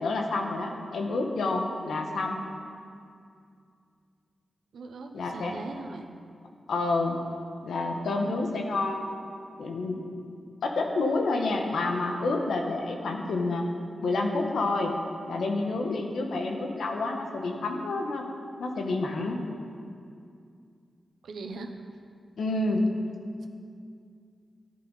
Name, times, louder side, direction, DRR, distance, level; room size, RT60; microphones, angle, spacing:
voice 1, 0.0-2.4 5.1-5.5 6.7-7.2 7.6-9.1 9.6-10.0 10.6-13.6 14.0-15.0 15.2-18.2 18.6-19.4 22.4-22.8, left 2 dB, 85° left, 2 dB, 1.3 m, -28 dB
voice 2, 4.7-6.1 21.2-21.7, right 3 dB, 90° right, 4 dB, 0.9 m, -39 dB
13.0 x 10.0 x 4.1 m, 2.4 s
cardioid pair, 65°, 0 cm